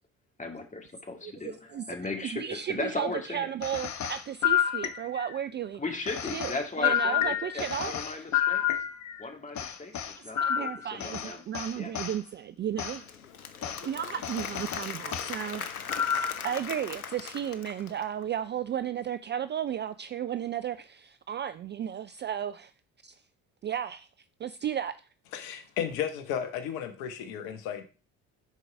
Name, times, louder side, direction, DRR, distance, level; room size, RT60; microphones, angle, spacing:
voice 1, 0.4-3.5 5.8-8.7 9.2-11.4 11.8-11.9 13.6-13.8, left 2 dB, 20° left, 2.1 m, -37 dB
voice 2, 1.2-1.8 2.2-5.8 6.3-6.5 6.8-7.9 10.4-13.0 13.8-15.7 16.0-22.7 23.0-23.1 23.6-24.1 24.4-24.9, right 9 dB, 25° right, 0.4 m, -34 dB
sound 1, 3.6-5.4 6.1-9.2 9.6-12.2 12.8-13.0 13.6-13.8 14.2-15.3 15.9-16.5, left 10 dB, 40° left, 1.1 m, -30 dB
Applause / Crowd, 12.8-18.2, left 8 dB, 90° left, 0.7 m, -40 dB
voice 3, 25.3-27.8, left 9 dB, 65° left, 1.2 m, -34 dB
10.0 x 4.6 x 4.7 m
figure-of-eight pair, 55°, 42 cm